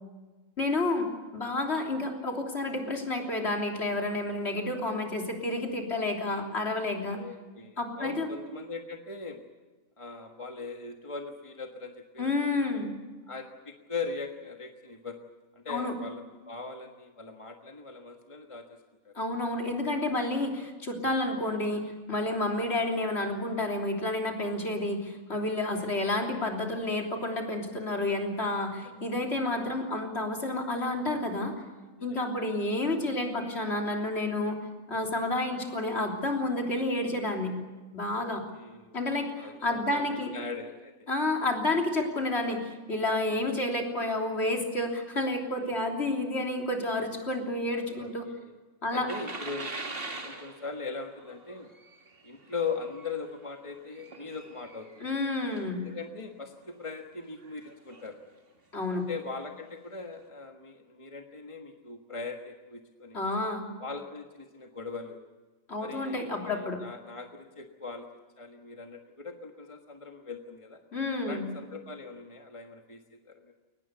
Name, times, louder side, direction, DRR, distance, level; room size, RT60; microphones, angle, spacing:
voice 1, 0.6-1.1 1.3-7.2 7.8-8.3 12.2-12.9 15.7-15.9 19.2-31.5 32.0-34.6 34.9-37.5 37.9-38.4 38.9-40.3 41.1-48.3 48.8-49.1 55.0-55.8 58.7-59.0 63.1-63.6 65.7-66.8 70.9-71.5, left 2 dB, 50° left, 1 dB, 3.6 m, -30 dB
voice 2, 7.1-9.4 10.0-12.6 13.3-15.2 15.5-18.8 19.0-19.1 25.6-25.8 28.8-29.0 29.8-29.9 32.0-32.2 38.1-39.0 39.3-40.9 43.3-43.5 45.6-45.8 47.9-48.5 48.9-49.9 50.2-51.7 52.2-55.1 55.8-58.2 58.9-63.2 63.8-65.2 65.8-68.1 68.4-70.8 71.2-73.5, left 4 dB, 25° left, 3 dB, 1.5 m, -40 dB
sound 1, 49.1-55.9 56.6-56.8 57.4-58.1 59.0-59.1 59.6-59.7, right 2 dB, 40° right, 2.5 m, -43 dB
22.5 x 20.0 x 8.2 m, 1.3 s
omnidirectional pair, 1.5 m